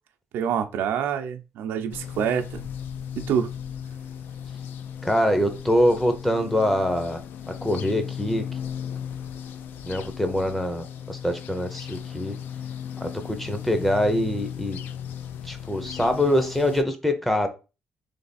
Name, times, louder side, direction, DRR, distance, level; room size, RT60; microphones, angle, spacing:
voice 1, 0.3-2.6 3.2-3.5, right 8 dB, 85° right, 0.6 m, -26 dB
sound 1, 1.9-16.8, left 8 dB, 65° left, 0.4 m, -36 dB
voice 2, 5.0-7.2 7.5-8.5 9.8-12.4 13.0-14.8 15.4-17.5, left 1 dB, 5° left, 0.6 m, -24 dB
3.4 x 3.3 x 4.1 m
cardioid pair, 165°, 4 cm